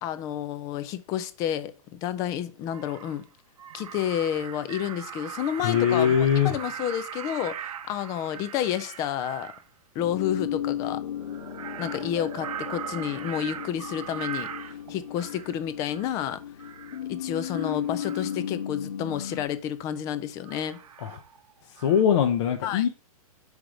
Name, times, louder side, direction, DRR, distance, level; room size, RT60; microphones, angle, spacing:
voice 1, 0.0-3.3 3.7-9.5 10.0-11.0 11.8-14.5 14.9-16.4 17.1-20.8 22.6-22.8, left 10 dB, 20° left, 0.4 m, -30 dB
Crow, 2.2-2.3 2.7-3.2 3.6-9.6 11.2-15.5 15.9-16.3 16.6-17.0 17.3-18.4 19.1-19.4 20.5-21.5 21.8-22.0, right 9 dB, 75° right, 0.7 m, -40 dB
voice 2, 5.6-6.5 21.0-21.2 21.7-22.9, left 8 dB, 50° left, 0.8 m, -22 dB
sound 1, 10.0-19.4, left 9 dB, 75° left, 1.3 m, -35 dB
5.0 x 4.6 x 5.1 m
hypercardioid pair, 150°, 19 cm